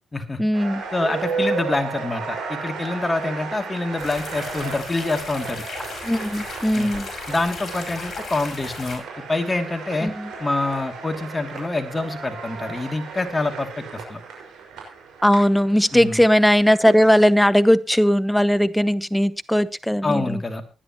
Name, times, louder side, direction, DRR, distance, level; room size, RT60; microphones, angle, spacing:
voice 1, 0.4-0.8 6.0-7.1 10.0-10.3 15.2-20.4, equal, 5° left, 16 dB, 0.9 m, -18 dB
sound 1, 0.5-17.3, right 4 dB, 85° right, 5.5 m, -34 dB
voice 2, 0.9-5.6 6.7-6.9 7.3-10.1 10.4-14.2 15.9-16.2 20.0-20.6, left 2 dB, 25° left, 6 dB, 2.7 m, -26 dB
sound 2, 4.0-9.0, left 5 dB, 50° left, 5.0 m, -36 dB
20.0 x 10.0 x 3.0 m, 0.30 s
supercardioid pair, 60°, 0 cm